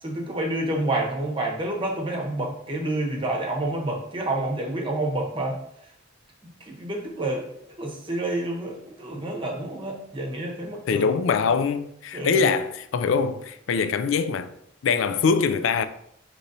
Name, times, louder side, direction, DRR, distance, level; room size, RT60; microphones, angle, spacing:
voice 1, 0.0-5.6 6.7-7.4 7.8-11.1 12.1-12.4, right 1 dB, 25° right, 0.8 m, -28 dB
voice 2, 10.8-14.5 14.8-15.8, left 5 dB, 80° left, 0.3 m, -23 dB
6.6 x 3.0 x 2.6 m
head